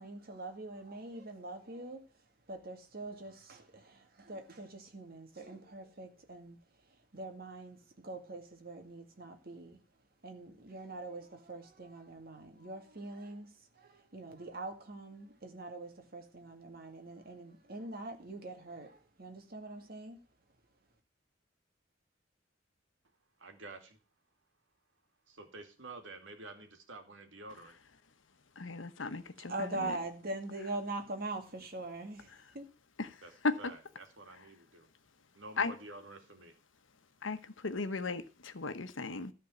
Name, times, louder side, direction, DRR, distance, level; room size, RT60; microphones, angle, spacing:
voice 1, 0.0-2.1 2.5-6.6 6.8-9.8 10.2-20.2 29.4-32.7, right 2 dB, 50° right, 2.1 m, -43 dB
voice 2, 23.4-24.0 25.3-27.8 33.2-34.9 35.3-36.6, right 2 dB, 80° right, 2.5 m, -50 dB
voice 3, 28.6-29.9 33.0-33.1 33.4-33.5 35.6-35.7 37.2-37.4 37.6-39.3, left 3 dB, 85° left, 1.1 m, -35 dB
13.5 x 4.6 x 7.9 m
head